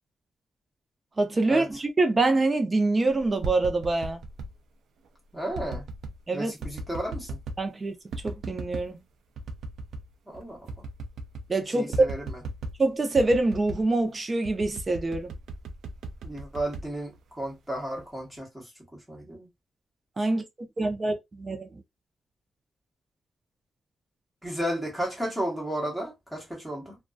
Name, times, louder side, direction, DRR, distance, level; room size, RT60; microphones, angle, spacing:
voice 1, 1.2-4.2 6.3-6.5 7.6-7.9 8.2-9.0 11.5-12.1 12.8-15.3 20.2-20.4 20.8-21.8, right 2 dB, 25° right, 0.5 m, -25 dB
sound 1, 3.2-4.5 5.5-6.2 6.6-7.7 8.1-8.9 9.4-10.1 10.4-10.5 10.7-11.5 11.9-12.8 13.2-13.9 14.4-17.5 18.0-18.4, right 2 dB, 80° right, 0.4 m, -37 dB
voice 2, 5.3-5.8 6.3-7.4 10.3-10.6 11.7-12.4 16.2-19.5 24.4-27.0, right 1 dB, ahead, 1.1 m, -33 dB
2.5 x 2.2 x 2.2 m
wide cardioid pair, 150°, 0 cm